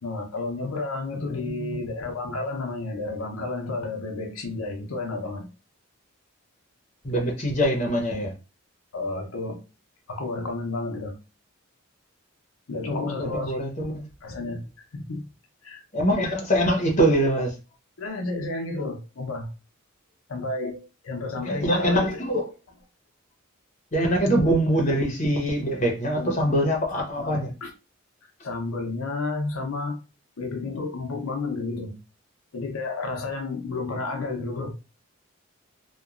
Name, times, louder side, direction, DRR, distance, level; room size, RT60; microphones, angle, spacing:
voice 1, 0.0-5.5 8.9-9.6 10.1-11.2 12.7-13.6 14.2-14.6 14.9-15.3 15.6-15.8 18.0-19.5 20.3-22.1 24.2-24.5 26.2-26.6 26.9-27.7 28.4-30.0 30.4-32.0 32.5-34.7, left 3 dB, 85° left, 0.6 m, -31 dB
voice 2, 1.3-1.8 7.0-8.3 12.9-14.1 15.9-17.5 21.4-22.5 23.9-27.5, right 1 dB, 35° left, 0.8 m, -24 dB
2.9 x 2.2 x 2.4 m
head